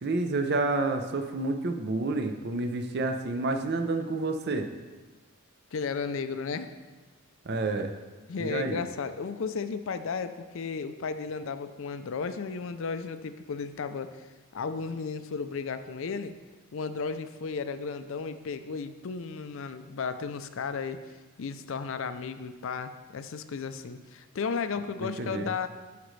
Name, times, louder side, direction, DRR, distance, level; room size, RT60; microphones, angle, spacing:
voice 1, 0.0-4.7 7.5-7.9 8.4-8.8 25.0-25.5, right 2 dB, 50° right, 6 dB, 0.6 m, -29 dB
voice 2, 5.7-6.7 8.3-14.3 14.5-16.4 16.7-21.0 21.4-25.7, left 5 dB, 60° left, 11 dB, 0.4 m, -34 dB
12.5 x 5.1 x 3.2 m, 1.3 s
head